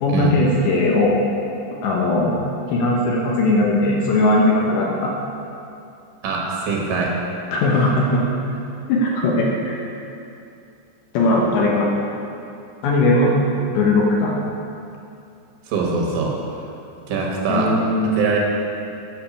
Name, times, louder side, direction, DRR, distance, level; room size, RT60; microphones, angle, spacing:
voice 1, 0.0-1.2 1.8-2.4 2.7-5.1 7.5-8.2 8.9-9.8 11.1-11.9 12.8-13.4 13.7-14.3 17.5-18.1, left 2 dB, 70° left, -3 dB, 3.1 m, -18 dB
voice 2, 6.2-7.1 15.7-16.6 17.1-17.7 18.2-18.4, right 4 dB, 75° right, -1 dB, 3.7 m, -22 dB
10.5 x 6.7 x 7.1 m, 2.6 s
omnidirectional pair, 5.8 m